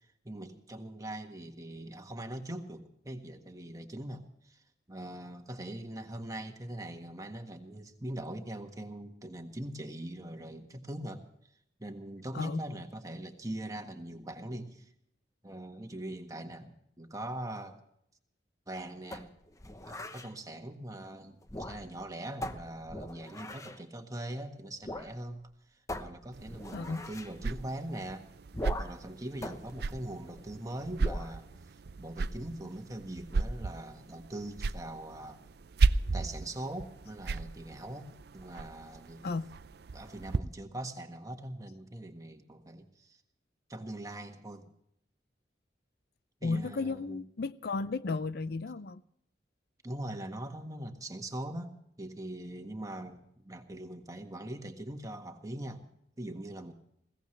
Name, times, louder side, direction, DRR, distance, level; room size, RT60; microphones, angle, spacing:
voice 1, 0.2-4.6 4.9-11.2 11.8-14.9 15.4-17.8 18.7-19.3 19.9-25.4 25.7-28.2 28.8-31.5 32.0-35.4 36.1-39.2 39.9-43.2 43.7-44.7 46.4-47.2 49.8-56.7, right 1 dB, 20° right, 1.6 m, -42 dB
sound 1, 19.1-20.3 21.4-22.0 22.4-23.8 24.8-25.1 25.4-25.5 25.9-27.3 28.5-29.1 29.4-30.5 31.0-31.4, left 1 dB, 20° left, 0.9 m, -41 dB
sound 2, 26.3-40.4, right 3 dB, 60° right, 0.5 m, -35 dB
voice 2, 26.7-27.0 39.2-39.5 46.4-49.0, left 3 dB, 60° left, 0.5 m, -34 dB
21.0 x 16.5 x 3.3 m
head